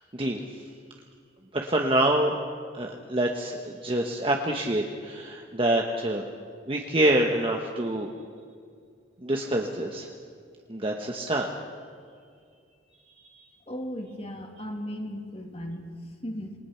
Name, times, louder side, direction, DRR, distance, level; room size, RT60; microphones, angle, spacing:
voice 1, 1.5-2.4 2.7-6.3 6.7-8.1 9.2-10.1 10.7-11.5, right 1 dB, 30° right, 1 dB, 1.2 m, -26 dB
voice 2, 13.7-16.5, equal, 30° left, 3 dB, 2.5 m, -36 dB
27.5 x 20.0 x 5.8 m, 2.3 s
head